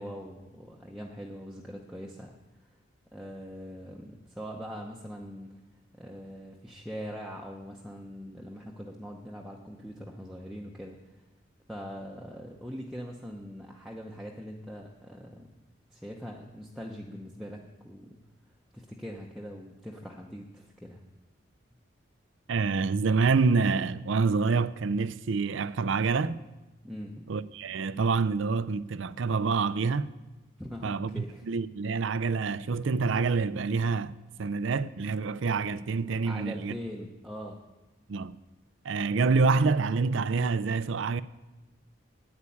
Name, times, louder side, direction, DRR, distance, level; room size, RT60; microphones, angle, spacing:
voice 1, 0.0-2.4 3.1-5.5 5.9-11.0 11.7-15.5 15.9-18.2 18.7-21.0 26.8-27.1 30.6-31.5 36.2-37.6, equal, ahead, 0.8 m, -42 dB
voice 2, 22.5-26.4 27.3-30.1 30.8-36.7 38.1-38.4 38.8-41.2, right 4 dB, 75° right, 0.5 m, -27 dB
9.6 x 9.6 x 8.6 m
head